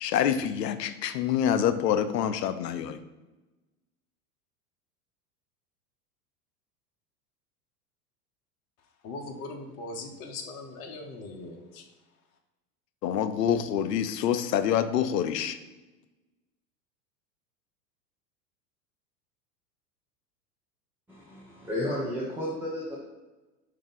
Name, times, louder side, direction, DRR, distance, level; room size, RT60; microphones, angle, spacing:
voice 1, 0.0-3.0 13.0-15.6, left 9 dB, 80° left, 11 dB, 0.5 m, -26 dB
voice 2, 9.0-11.9, left 2 dB, 40° left, 2 dB, 0.7 m, -40 dB
voice 3, 21.1-22.9, left 1 dB, 5° right, -7 dB, 0.3 m, -32 dB
4.8 x 2.8 x 3.9 m, 1.1 s
hypercardioid pair, 90°, 49 cm